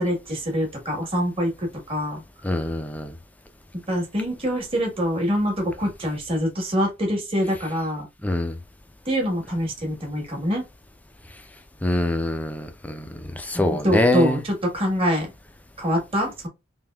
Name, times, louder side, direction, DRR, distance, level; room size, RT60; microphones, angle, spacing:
voice 1, 0.0-2.2 3.9-8.1 9.0-10.6 13.5-15.3 15.8-16.5, equal, 30° right, 1.2 m, -25 dB
voice 2, 2.4-3.1 8.2-8.6 11.8-13.1 13.4-14.4, left 1 dB, 10° left, 0.4 m, -24 dB
3.4 x 2.6 x 2.3 m
head